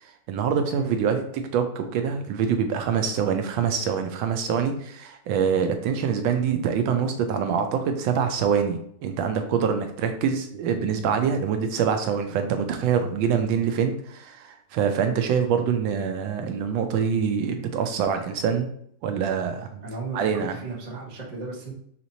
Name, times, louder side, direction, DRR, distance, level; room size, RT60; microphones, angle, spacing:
voice 1, 0.3-1.2 1.5-18.7 19.0-19.8 20.1-20.6, right 7 dB, 80° right, 6 dB, 1.3 m, -25 dB
voice 2, 19.8-21.7, right 4 dB, 35° right, -2 dB, 0.7 m, -35 dB
4.9 x 2.9 x 2.7 m, 0.67 s
omnidirectional pair, 2.1 m